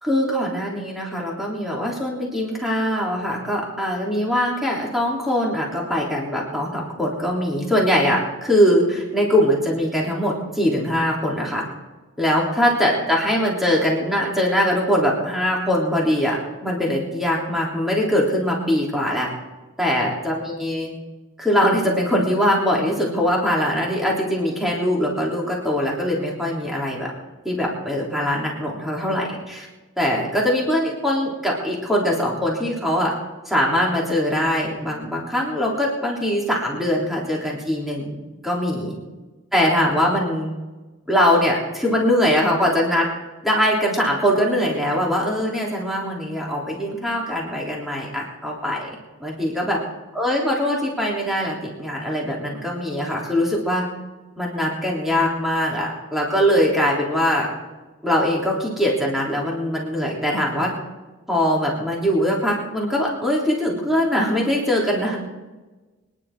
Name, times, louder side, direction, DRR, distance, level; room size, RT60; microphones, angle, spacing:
voice 1, 0.0-11.6 12.2-19.3 19.8-20.9 21.4-27.1 27.4-29.7 30.0-33.1 33.4-38.1 38.4-38.9 39.5-40.5 41.1-43.1 43.4-49.8 50.1-53.9 54.4-57.5 58.0-60.7 61.3-65.2, equal, ahead, -4 dB, 3.4 m, -22 dB
25.5 x 11.0 x 3.8 m, 1.2 s
head